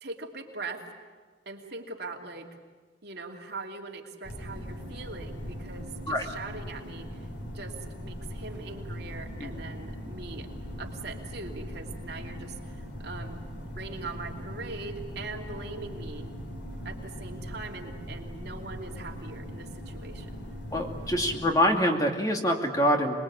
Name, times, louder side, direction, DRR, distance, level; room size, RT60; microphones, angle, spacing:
voice 1, 0.0-0.8 1.5-2.5 3.0-7.2 7.5-10.5 10.8-16.3 16.8-20.4, right 3 dB, 60° right, 1 dB, 2.9 m, -41 dB
sound 1, 4.2-21.5, equal, 70° left, 3.1 m, -40 dB
voice 2, 20.7-23.2, equal, 20° left, 2 dB, 2.4 m, -25 dB
26.5 x 21.0 x 8.7 m, 1.5 s
head